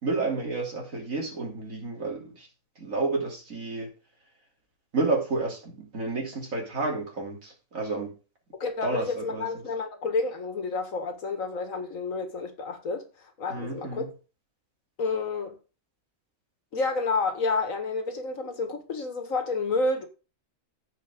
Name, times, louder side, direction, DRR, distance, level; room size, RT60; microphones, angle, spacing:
voice 1, 0.0-2.5 2.8-3.9 4.9-8.1 8.8-9.5 13.5-14.1, right 3 dB, 75° right, 3.4 m, -30 dB
voice 2, 8.6-14.1 15.0-15.6 16.7-20.1, left 3 dB, 75° left, 2.0 m, -30 dB
15.5 x 5.2 x 3.6 m
omnidirectional pair, 1.4 m